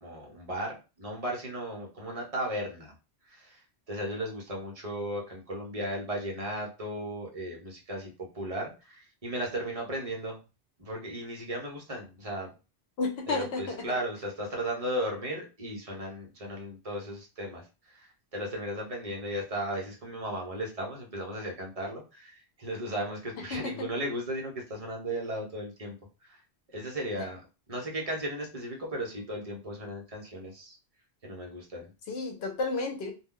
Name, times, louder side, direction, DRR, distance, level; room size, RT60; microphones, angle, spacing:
voice 1, 0.0-2.9 3.3-3.6 3.9-8.1 8.3-10.4 10.8-12.5 13.3-26.0 26.2-26.4 26.7-27.4 27.7-30.8 31.2-31.9, right 1 dB, 35° right, -1 dB, 0.8 m, -36 dB
voice 2, 13.0-13.8 23.5-23.9 32.1-33.1, left 3 dB, 75° left, 3 dB, 0.9 m, -32 dB
2.3 x 2.2 x 3.7 m, 0.30 s
omnidirectional pair, 1.1 m